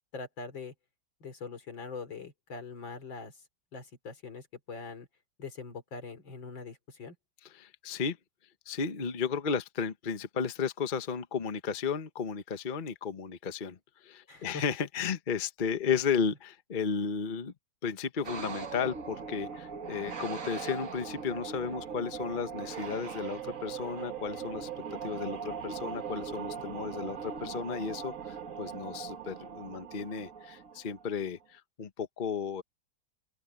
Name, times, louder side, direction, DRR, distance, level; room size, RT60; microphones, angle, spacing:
voice 1, 0.1-0.7 1.2-3.4 3.7-5.1 5.4-7.2 14.3-14.6, left 4 dB, 80° left, 4.0 m, -42 dB
voice 2, 7.5-8.2 8.7-17.5 17.8-24.7 25.0-32.6, left 6 dB, 30° left, 1.0 m, -34 dB
sound 1, 18.2-31.2, right 6 dB, 45° right, 1.9 m, -40 dB
open air
omnidirectional pair, 2.0 m